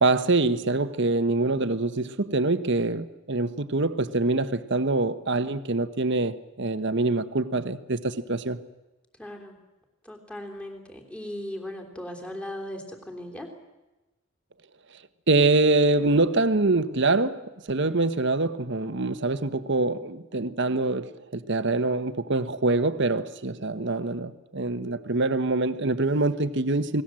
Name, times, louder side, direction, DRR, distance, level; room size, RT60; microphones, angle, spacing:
voice 1, 0.0-8.6 15.3-27.0, right 2 dB, 55° right, 1.2 m, -25 dB
voice 2, 9.2-9.6 10.0-13.5, left 1 dB, 5° left, 3.3 m, -38 dB
29.5 x 20.0 x 7.7 m
head